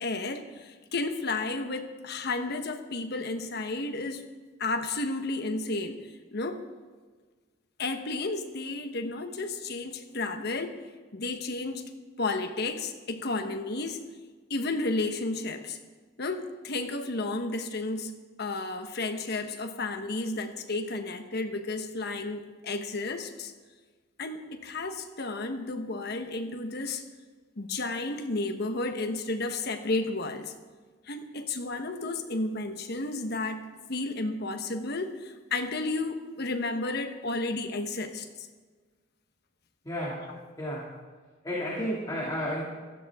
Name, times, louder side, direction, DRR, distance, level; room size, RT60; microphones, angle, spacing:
voice 1, 0.0-4.2 4.6-6.0 6.3-6.6 7.8-10.8 11.1-11.9 12.2-14.0 14.5-15.8 16.2-23.5 24.2-27.0 27.6-30.5 31.0-33.6 33.9-38.5 40.3-40.4, left 2 dB, 60° left, 6 dB, 1.1 m, -32 dB
voice 2, 39.8-40.3 40.6-40.9 41.4-42.6, equal, 20° left, -5 dB, 2.4 m, -32 dB
16.5 x 14.0 x 3.6 m, 1.4 s
head